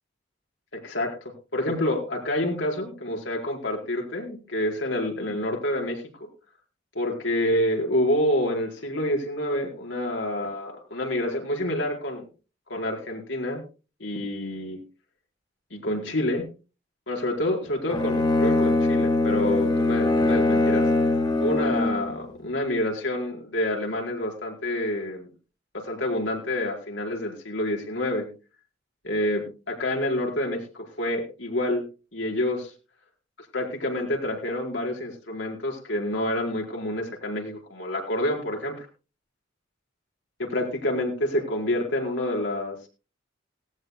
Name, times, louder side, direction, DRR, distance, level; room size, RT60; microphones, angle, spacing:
voice 1, 0.7-6.0 6.9-12.3 12.7-13.6 14.0-14.8 15.7-16.4 17.1-20.9 21.4-25.3 25.7-28.3 29.0-31.8 32.1-32.6 33.5-38.9 40.4-42.7, left 1 dB, 70° left, 1 dB, 4.7 m, -28 dB
Bowed string instrument, 17.9-22.1, left 2 dB, 20° left, 1.8 m, -22 dB
18.5 x 16.5 x 2.3 m, 0.33 s
head